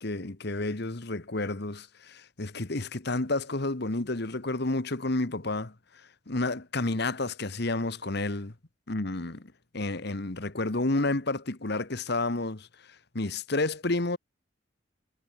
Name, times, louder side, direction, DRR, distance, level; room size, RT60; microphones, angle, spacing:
voice 1, 0.0-5.7 6.3-8.5 8.9-12.7 13.1-14.2, left 2 dB, 55° left, 1.4 m, -30 dB
head